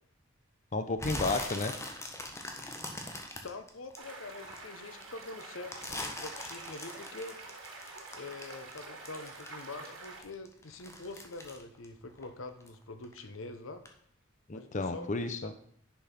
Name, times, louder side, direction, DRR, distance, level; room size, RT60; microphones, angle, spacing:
voice 1, 0.7-1.7 14.5-15.5, left 3 dB, 40° left, 8 dB, 0.7 m, -32 dB
sound 1, 1.0-4.6 5.0-9.8 10.0-12.7 13.0-13.4 13.8-13.9, left 1 dB, 15° left, 1.4 m, -41 dB
voice 2, 3.4-7.4 8.1-13.8 14.5-15.1 15.4-15.6, left 3 dB, 80° left, 10 dB, 0.9 m, -45 dB
sound 2, 4.0-10.2, right 3 dB, 85° right, 3.2 m, -47 dB
10.5 x 5.5 x 5.9 m, 0.62 s
head